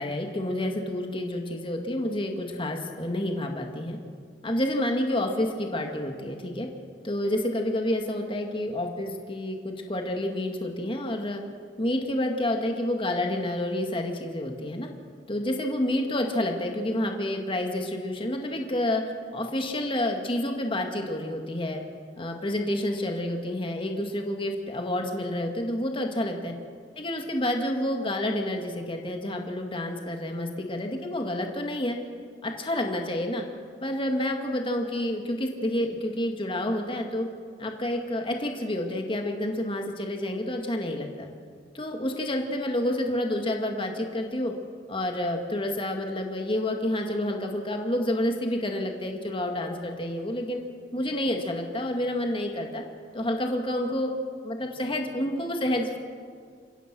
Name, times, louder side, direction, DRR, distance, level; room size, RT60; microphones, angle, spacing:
voice 1, 0.0-4.0 4.4-6.7 7.0-11.4 11.8-14.9 15.3-19.0 19.3-21.8 22.2-26.5 27.0-32.0 32.4-33.4 33.8-37.3 37.6-41.3 41.7-44.5 44.9-50.6 50.9-52.8 53.1-54.1 54.4-56.0, left 1 dB, 30° left, 3 dB, 2.0 m, -29 dB
29.0 x 16.0 x 6.2 m, 2.1 s
head